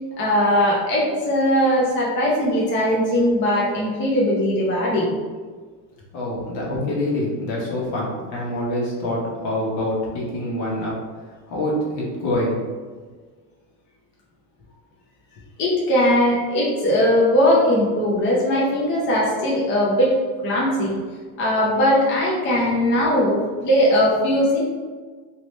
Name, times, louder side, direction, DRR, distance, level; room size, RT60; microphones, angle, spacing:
voice 1, 0.2-5.1 15.6-20.1 20.4-21.0 21.4-24.6, equal, 25° left, -5 dB, 0.6 m, -19 dB
voice 2, 6.1-10.9 11.5-12.6, left 1 dB, 60° left, -4 dB, 1.4 m, -25 dB
2.9 x 2.9 x 3.1 m, 1.5 s
cardioid pair, 140°, 45 cm